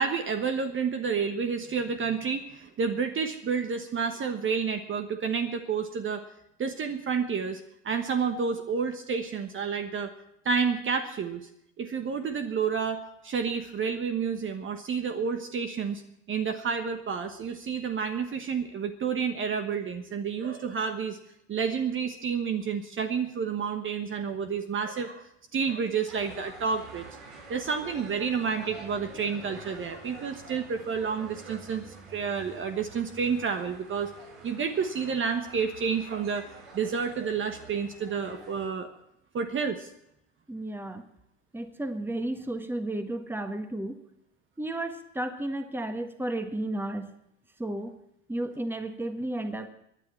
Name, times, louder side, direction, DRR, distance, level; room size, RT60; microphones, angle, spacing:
voice 1, 0.0-6.3 6.6-10.1 10.4-11.5 11.8-16.0 16.3-21.2 21.5-27.1 27.5-31.8 32.1-34.1 34.4-38.9 39.3-39.9, right 6 dB, 35° right, 6 dB, 1.3 m, -30 dB
sound 1, 26.1-38.7, right 4 dB, 70° right, 5.0 m, -48 dB
voice 2, 40.5-41.0 41.5-44.0 44.6-47.1 47.6-48.0 48.3-49.7, right 1 dB, 5° right, 7 dB, 1.6 m, -33 dB
24.0 x 9.8 x 4.5 m, 0.78 s
hypercardioid pair, 80°, 36 cm